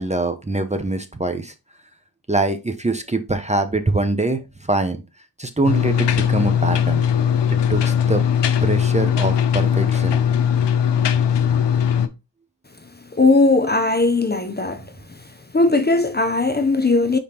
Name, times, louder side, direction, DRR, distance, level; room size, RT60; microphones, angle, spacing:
voice 1, 0.0-1.5 2.3-5.0 5.4-7.0 7.5-8.2 8.6-10.2, right 2 dB, 15° right, 0.6 m, -23 dB
sound 1, 5.6-12.1, left 8 dB, 80° left, 0.6 m, -19 dB
voice 2, 13.1-14.8 15.5-17.2, left 3 dB, 25° left, 0.6 m, -18 dB
4.9 x 3.5 x 2.8 m
cardioid pair, 60°, 42 cm